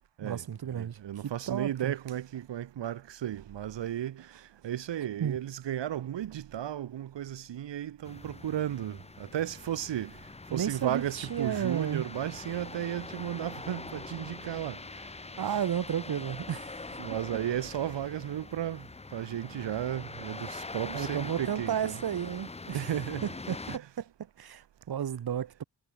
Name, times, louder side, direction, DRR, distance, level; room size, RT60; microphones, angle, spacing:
voice 1, 0.2-1.9 5.2-5.4 10.5-12.0 15.4-17.0 20.8-22.9 23.2-24.0 24.4-25.6, right 9 dB, 60° right, 1.1 m, -33 dB
voice 2, 0.7-10.2 10.5-14.8 15.5-15.6 17.0-18.9 19.1-22.0 22.7-23.3 23.7-23.8, right 11 dB, 80° right, 1.0 m, -34 dB
sound 1, 8.0-23.8, left 3 dB, 15° left, 0.7 m, -43 dB
cardioid pair, 90°, 43 cm